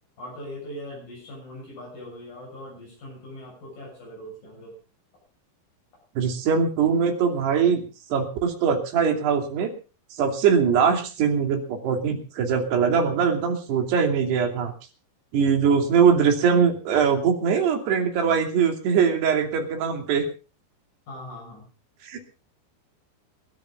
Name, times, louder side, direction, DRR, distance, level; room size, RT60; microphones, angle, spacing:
voice 1, 0.2-4.8 21.1-21.7, left 1 dB, 45° left, -3 dB, 8.8 m, -40 dB
voice 2, 6.2-7.8 8.1-9.7 10.1-14.7 15.3-20.3 22.0-22.2, right 6 dB, 65° right, 4 dB, 4.7 m, -22 dB
29.0 x 13.0 x 2.5 m, 0.33 s
omnidirectional pair, 5.4 m